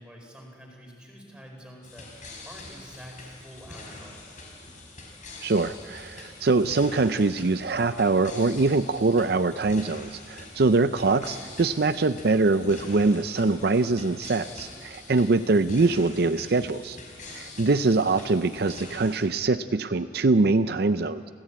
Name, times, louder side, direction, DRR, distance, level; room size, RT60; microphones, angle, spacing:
voice 1, 0.0-4.3 15.4-15.7, equal, 5° right, 0 dB, 4.7 m, -47 dB
sound 1, 1.8-19.2, left 2 dB, 45° left, 5.4 m, -44 dB
voice 2, 5.4-17.0 17.3-21.3, right 3 dB, 60° right, 11 dB, 0.5 m, -23 dB
29.5 x 14.5 x 8.8 m, 2.2 s
head